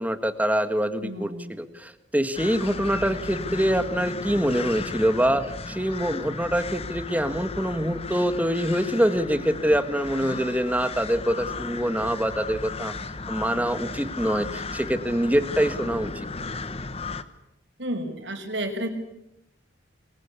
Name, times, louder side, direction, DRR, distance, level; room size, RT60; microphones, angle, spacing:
voice 1, 0.0-12.9 13.3-16.3, equal, 10° right, 10 dB, 1.6 m, -25 dB
voice 2, 1.0-1.5 10.2-10.4 17.8-18.9, right 1 dB, 70° right, 5 dB, 5.4 m, -32 dB
sound 1, 2.3-17.2, left 3 dB, 30° left, 1.2 m, -35 dB
26.5 x 22.0 x 8.4 m, 0.89 s
head